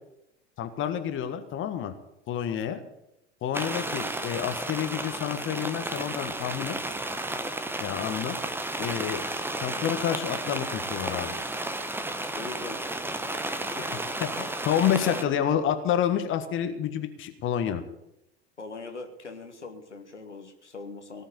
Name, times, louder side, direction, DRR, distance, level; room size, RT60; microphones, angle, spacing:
voice 1, 0.6-1.9 2.3-2.8 3.4-6.7 7.8-8.4 8.8-9.2 9.6-11.3 13.8-13.9 14.2-17.8, left 9 dB, 35° left, 8 dB, 1.6 m, -29 dB
sound 1, 3.5-15.2, right 1 dB, 5° right, 1.1 m, -33 dB
voice 2, 12.3-12.9 13.6-14.5 14.8-15.4 18.6-21.2, left 3 dB, 85° left, 4 dB, 1.7 m, -41 dB
18.0 x 6.4 x 9.8 m, 0.84 s
figure-of-eight pair, 75°, 34 cm